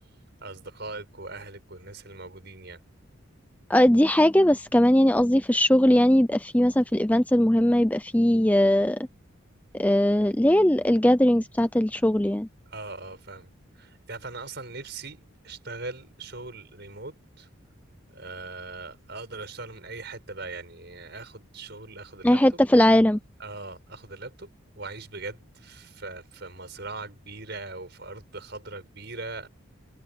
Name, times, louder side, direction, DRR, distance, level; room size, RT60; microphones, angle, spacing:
voice 1, 0.4-2.8 12.7-13.5 13.7-17.5 18.1-22.4 23.4-29.5, right 3 dB, 55° right, 6.6 m, -40 dB
voice 2, 3.7-9.0 9.7-12.5 22.2-23.2, left 1 dB, 5° left, 0.6 m, -20 dB
head